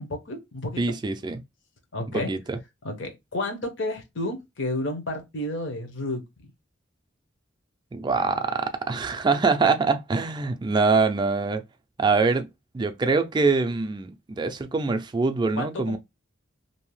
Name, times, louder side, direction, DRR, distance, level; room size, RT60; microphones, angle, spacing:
voice 1, 0.0-0.8 1.9-2.3 2.8-6.5 15.5-16.0, left 1 dB, 70° left, 0.8 m, -31 dB
voice 2, 0.8-1.4 2.1-2.6 7.9-11.6 12.0-12.5 12.7-16.0, right 4 dB, 20° right, 0.3 m, -24 dB
2.7 x 2.0 x 2.9 m
head